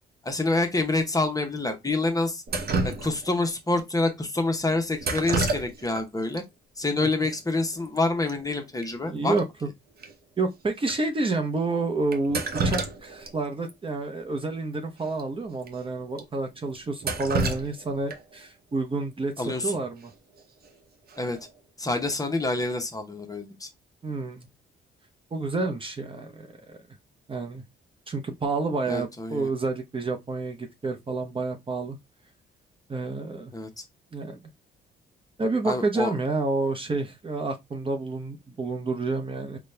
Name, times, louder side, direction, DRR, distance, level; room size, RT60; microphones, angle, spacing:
voice 1, 0.2-2.4 2.8-6.4 6.8-9.3 19.4-19.7 21.2-21.4 21.8-23.7 28.9-29.5 33.5-33.8 35.6-36.1, left 2 dB, 20° left, 0.9 m, -27 dB
Drip, 2.5-3.5 5.0-6.0 6.3-6.4 7.4-7.5 7.7-8.0 8.3-8.4 8.8-8.9 9.4-9.5 10.0-10.1 10.8-10.9 12.1-13.3 13.7-13.8 15.1-15.2 15.6-15.7 16.2-16.3 16.7-18.4 20.4-20.7 21.1-21.5, right 3 dB, 50° right, 0.9 m, -29 dB
voice 2, 9.1-9.7 10.4-20.1 24.0-24.5 25.3-26.8 27.3-27.6 28.1-32.0 32.9-33.5 34.1-34.4 35.4-39.6, right 3 dB, 25° right, 0.8 m, -29 dB
4.0 x 2.3 x 3.2 m
cardioid pair, 90°, 20 cm